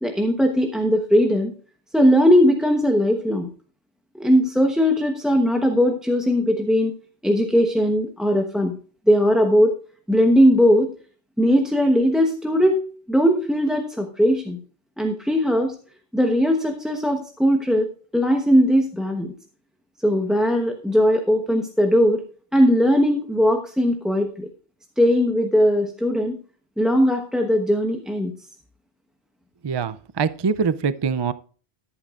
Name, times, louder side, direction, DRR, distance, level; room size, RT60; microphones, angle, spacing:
voice 1, 0.0-1.5 1.9-3.5 4.1-6.9 7.2-8.8 9.1-9.8 10.1-10.9 11.4-12.8 13.1-14.6 15.0-15.7 16.1-19.3 20.0-22.2 22.5-24.5 25.0-26.4 26.8-28.3, equal, ahead, 3 dB, 1.0 m, -19 dB
voice 2, 29.6-31.3, right 5 dB, 40° right, 15 dB, 0.4 m, -23 dB
13.0 x 11.0 x 2.5 m, 0.40 s
omnidirectional pair, 1.1 m